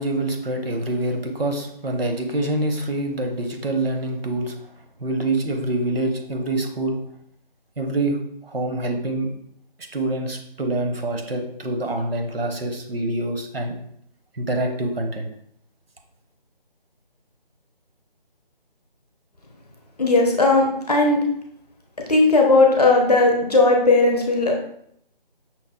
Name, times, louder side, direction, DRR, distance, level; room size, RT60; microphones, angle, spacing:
voice 1, 0.0-4.5 5.0-7.0 7.8-9.3 9.9-13.8 14.3-15.3, right 2 dB, 85° right, 4 dB, 0.8 m, -25 dB
voice 2, 20.0-21.2 22.1-24.5, left 2 dB, 45° left, 0 dB, 0.7 m, -17 dB
5.7 x 2.1 x 2.2 m, 0.70 s
figure-of-eight pair, 160°, 29 cm